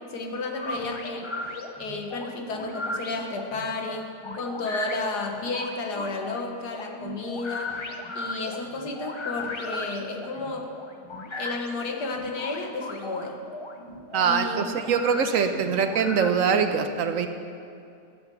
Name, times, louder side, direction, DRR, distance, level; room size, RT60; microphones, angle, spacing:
voice 1, 0.1-1.3 1.8-4.1 4.3-7.8 8.2-10.8 11.4-13.4 14.2-14.7 15.7-15.8, left 3 dB, 85° left, 3 dB, 1.9 m, -32 dB
sound 1, 0.5-16.3, left 2 dB, 30° left, 0.5 m, -37 dB
voice 2, 14.1-17.3, right 6 dB, 60° right, 7 dB, 1.2 m, -23 dB
12.0 x 8.7 x 6.9 m, 2.5 s
omnidirectional pair, 1.7 m